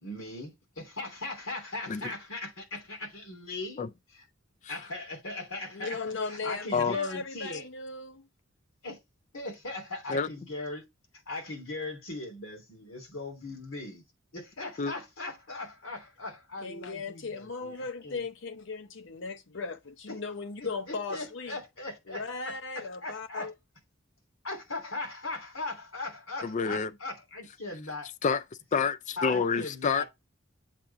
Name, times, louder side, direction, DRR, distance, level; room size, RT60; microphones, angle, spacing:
voice 1, 0.0-3.8 4.1-4.3 4.7-7.7 8.8-9.0 9.3-10.8 11.3-14.0 14.3-18.2 20.6-23.5 24.4-28.1 29.2-30.0, left 2 dB, 80° left, 3.0 m, -39 dB
voice 2, 5.7-8.3 16.6-21.6 22.1-23.5, left 4 dB, 65° left, 0.8 m, -37 dB
voice 3, 26.4-26.9 28.2-28.4 28.7-30.0, left 5 dB, 35° left, 0.4 m, -28 dB
7.4 x 2.6 x 5.6 m
head